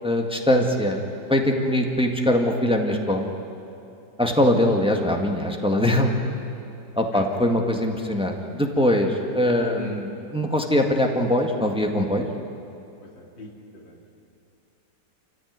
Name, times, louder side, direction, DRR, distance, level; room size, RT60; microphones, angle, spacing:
voice 1, 0.0-1.0 1.3-3.3 4.2-6.1 7.0-12.3, left 1 dB, 5° right, 2 dB, 1.7 m, -22 dB
voice 2, 7.0-7.3 9.7-10.1 13.0-14.2, left 2 dB, 90° left, 0 dB, 3.6 m, -41 dB
27.5 x 15.0 x 9.6 m, 2.7 s
omnidirectional pair, 2.0 m